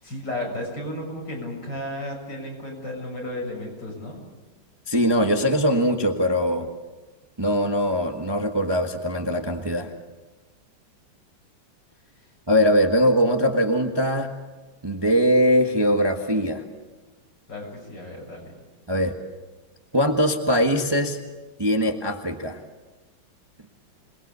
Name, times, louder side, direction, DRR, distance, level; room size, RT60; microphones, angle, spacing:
voice 1, 0.0-4.2 17.5-18.5, left 1 dB, 60° left, 0 dB, 7.8 m, -33 dB
voice 2, 4.9-6.7 7.4-9.9 12.5-14.3 14.8-16.6 18.9-19.1 19.9-21.2 21.6-22.6, equal, 15° right, 4 dB, 1.3 m, -21 dB
27.0 x 21.0 x 8.2 m, 1.2 s
omnidirectional pair, 2.1 m